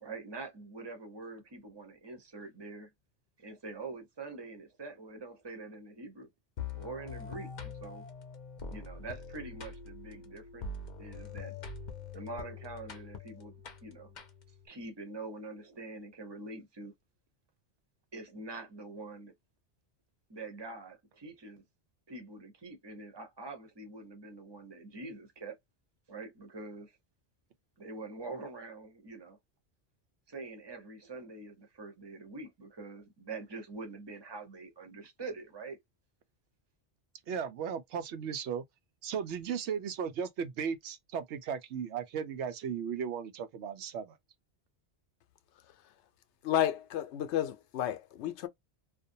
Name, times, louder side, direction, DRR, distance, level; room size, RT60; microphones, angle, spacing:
voice 1, 0.0-2.9 3.4-6.3 6.7-8.0 8.7-10.7 11.0-11.5 12.1-13.6 13.8-14.1 14.6-16.9 18.1-19.3 20.3-21.6 22.1-25.6 26.1-26.9 27.8-29.4 30.3-35.8, right 3 dB, 25° right, 0.7 m, -45 dB
sound 1, 6.6-14.7, left 4 dB, 50° left, 0.7 m, -44 dB
voice 2, 37.3-38.6 39.0-44.2, right 7 dB, 85° right, 0.9 m, -36 dB
voice 3, 46.4-48.5, left 11 dB, 80° left, 0.9 m, -31 dB
2.5 x 2.1 x 2.6 m
omnidirectional pair, 1.1 m